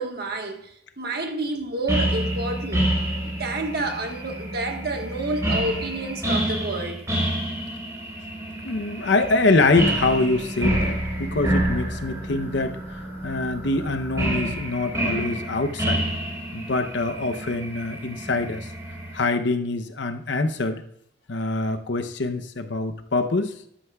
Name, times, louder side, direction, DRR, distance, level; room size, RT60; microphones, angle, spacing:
voice 1, 0.0-2.9 3.2-7.1, right 2 dB, 55° right, 1.4 m, -29 dB
sound 1, 1.9-19.2, right 1 dB, 15° right, 3.9 m, -28 dB
voice 2, 8.6-16.1 16.5-18.7 19.1-20.8 21.3-23.5, left 3 dB, 70° left, 0.7 m, -24 dB
13.5 x 11.5 x 2.3 m
head